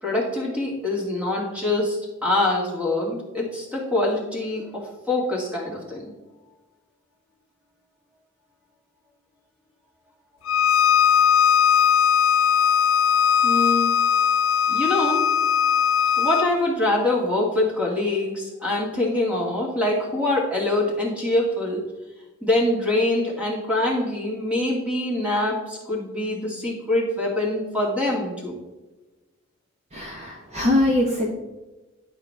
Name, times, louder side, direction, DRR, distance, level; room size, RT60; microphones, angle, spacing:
voice 1, 0.0-6.1 13.4-13.9 14.7-15.2 16.2-21.8 22.4-28.5, left 2 dB, 5° right, -2 dB, 2.2 m, -24 dB
Bowed string instrument, 10.5-16.5, left 8 dB, 75° left, 0.4 m, -19 dB
voice 2, 29.9-31.3, left 1 dB, 35° right, -2 dB, 1.3 m, -22 dB
11.0 x 6.0 x 3.5 m, 1.1 s
head